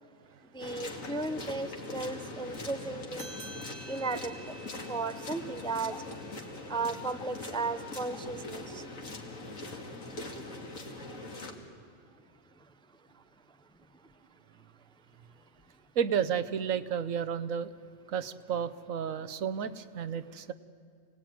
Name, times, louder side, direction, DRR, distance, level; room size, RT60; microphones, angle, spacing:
voice 1, 0.5-3.3 3.9-4.5 4.9-5.9 6.7-8.8, right 3 dB, 5° left, 10 dB, 0.4 m, -35 dB
sound 1, 0.6-11.5, left 2 dB, 85° left, 2.6 m, -42 dB
sound 2, 3.2-8.1, right 2 dB, 60° right, 2.0 m, -51 dB
voice 2, 16.0-17.7 18.1-20.5, right 8 dB, 90° right, 13 dB, 1.3 m, -32 dB
27.0 x 19.0 x 9.3 m, 2.4 s
omnidirectional pair, 1.3 m